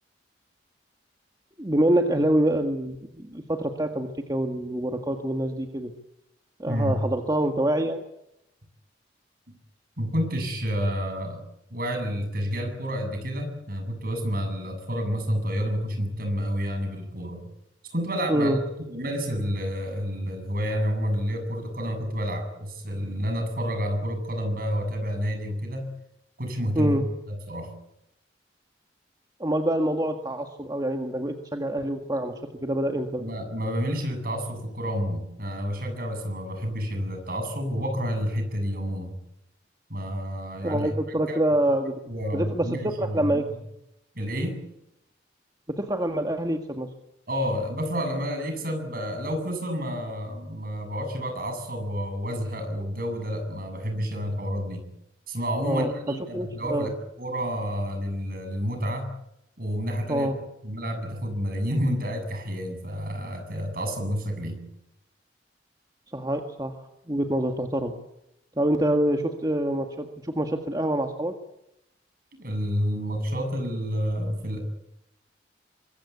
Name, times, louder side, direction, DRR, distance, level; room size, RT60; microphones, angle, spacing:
voice 1, 1.6-5.9 6.6-8.1 18.3-18.6 26.8-27.1 29.4-32.3 32.6-33.3 40.6-42.0 42.3-43.4 45.7-46.9 55.6-55.9 56.3-56.9 60.1-60.4 66.1-66.7 67.1-68.0 68.6-71.3, right 1 dB, 20° right, 4 dB, 1.8 m, -26 dB
voice 2, 6.7-7.0 10.0-11.4 11.7-17.4 17.9-18.6 18.9-25.9 26.4-27.0 27.3-27.7 33.2-39.1 39.9-40.9 41.3-41.4 42.1-43.3 44.2-44.6 47.3-54.8 55.3-56.9 57.2-59.1 59.6-60.3 60.6-64.6 72.4-74.6, equal, 50° right, 6 dB, 7.7 m, -29 dB
25.0 x 22.0 x 8.5 m, 0.83 s
head